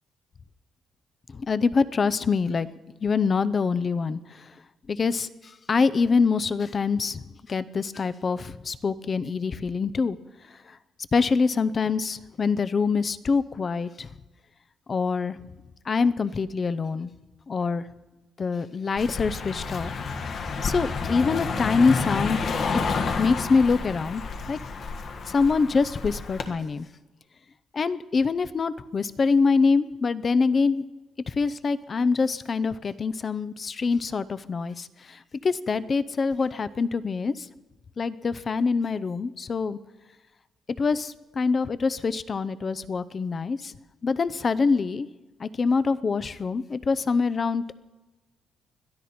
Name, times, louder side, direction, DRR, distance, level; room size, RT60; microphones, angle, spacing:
voice 1, 1.3-2.7 3.0-4.2 4.9-5.3 5.7-7.2 7.5-10.2 11.1-14.1 14.9-15.4 15.9-17.1 17.5-17.8 18.4-19.9 20.2-22.5 22.9-24.2 24.5-24.6 25.3-26.9 27.7-30.8 31.3-34.9 35.4-37.5 38.0-39.8 40.8-43.7 44.0-45.1 45.4-47.7, left 4 dB, 40° left, 14 dB, 0.6 m, -25 dB
Car passing by, 19.0-26.5, left 4 dB, 60° left, 1.6 m, -30 dB
21.5 x 12.5 x 4.3 m, 1.2 s
cardioid pair, 90°, 0 cm